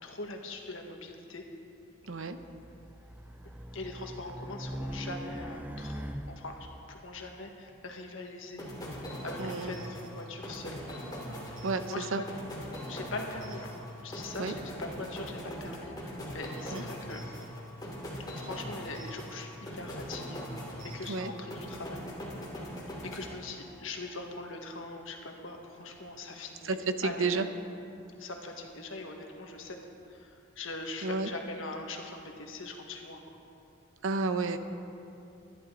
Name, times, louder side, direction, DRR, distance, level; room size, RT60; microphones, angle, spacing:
voice 1, 0.0-1.4 3.7-8.6 9.2-10.8 11.3-12.2 12.9-13.7 14.0-17.2 18.3-20.4 20.9-22.0 23.0-26.8 27.0-27.3 28.2-29.8 30.1-33.2, left 2 dB, 75° left, 2 dB, 1.6 m, -42 dB
voice 2, 2.1-2.4 9.4-9.8 11.6-11.8 12.1-12.2 14.4-14.5 16.7-16.8 21.1-21.3 26.6-27.5 31.0-31.3 34.0-34.6, right 3 dB, 75° right, 9 dB, 0.8 m, -31 dB
Race car auto racing, 2.3-6.7, equal, 10° right, 0.5 m, -41 dB
sound 1, 8.6-23.9, equal, 20° left, 2.6 m, -41 dB
23.5 x 11.5 x 3.9 m, 2.7 s
head